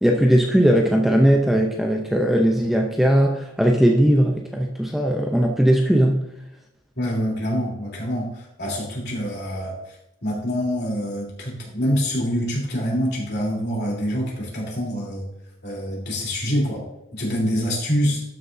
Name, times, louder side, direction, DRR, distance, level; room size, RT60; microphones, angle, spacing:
voice 1, 0.0-6.2, equal, ahead, 1 dB, 0.5 m, -18 dB
voice 2, 7.0-9.9 10.2-15.3 15.6-16.8 17.1-18.2, equal, 55° left, -3 dB, 3.3 m, -25 dB
12.5 x 6.6 x 2.6 m, 0.84 s
head